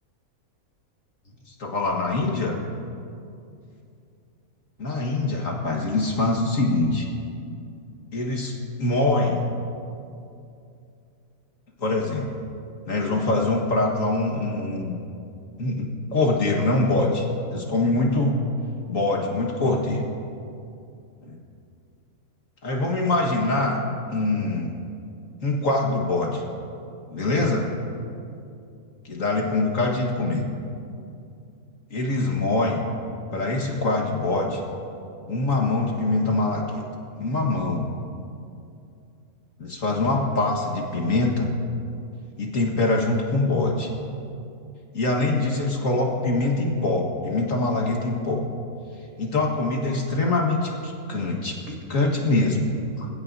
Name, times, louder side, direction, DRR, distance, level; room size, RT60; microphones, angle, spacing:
voice 1, 1.5-2.6 4.8-7.1 8.1-9.5 11.8-12.3 12.9-14.9 15.6-17.3 17.5-18.4 18.9-20.0 21.2-21.4 22.6-23.8 24.1-24.7 25.4-26.4 27.1-27.7 29.1-30.5 31.9-32.9 33.3-34.6 35.3-36.8 37.2-37.9 39.6-41.5 42.4-43.9 44.9-48.5 49.2-53.1, left 2 dB, 60° left, -1 dB, 2.0 m, -24 dB
26.5 x 16.5 x 2.8 m, 2.6 s
omnidirectional pair, 1.6 m